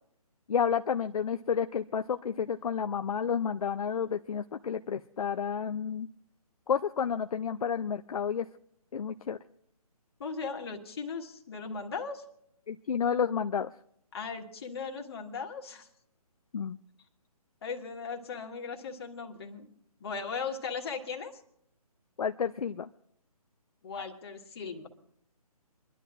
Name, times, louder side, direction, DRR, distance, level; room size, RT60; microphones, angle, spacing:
voice 1, 0.5-6.1 6.7-8.5 8.9-9.4 12.7-13.7 16.5-16.8 22.2-22.9, left 7 dB, 65° left, 8 dB, 0.5 m, -30 dB
voice 2, 10.2-12.2 14.1-15.9 17.6-19.7 20.0-21.4 23.8-24.9, left 5 dB, 40° left, 2 dB, 1.7 m, -38 dB
27.5 x 11.5 x 2.5 m, 0.70 s
figure-of-eight pair, 155°, 20 cm